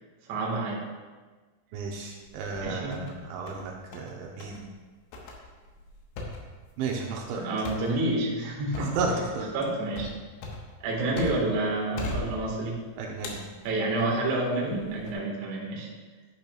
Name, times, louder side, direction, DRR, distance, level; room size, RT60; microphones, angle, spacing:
voice 1, 0.3-0.8 2.6-3.1 7.3-8.9 9.5-10.1 10.8-12.8 13.6-15.9, right 2 dB, 55° right, -3 dB, 2.1 m, -29 dB
voice 2, 1.7-4.7 6.8-7.4 8.8-9.5 13.0-13.4, right 4 dB, 80° right, 0 dB, 3.0 m, -33 dB
sound 1, 2.2-3.1 3.5-4.1 4.4-4.6 5.1-11.6 12.0-12.8 13.2-14.2 14.7-15.1, left 2 dB, 75° left, 3.5 m, -39 dB
10.5 x 10.0 x 2.4 m, 1.4 s
omnidirectional pair, 5.6 m